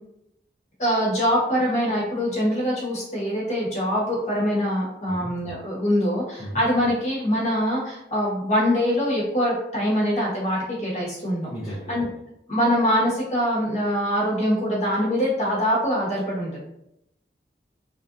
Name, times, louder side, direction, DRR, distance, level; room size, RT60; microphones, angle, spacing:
voice 1, 0.8-11.5 11.9-12.1 12.5-16.6, equal, 40° left, -5 dB, 1.2 m, -23 dB
voice 2, 11.5-12.1, equal, 20° left, -10 dB, 0.6 m, -35 dB
3.3 x 2.5 x 2.6 m, 0.80 s
head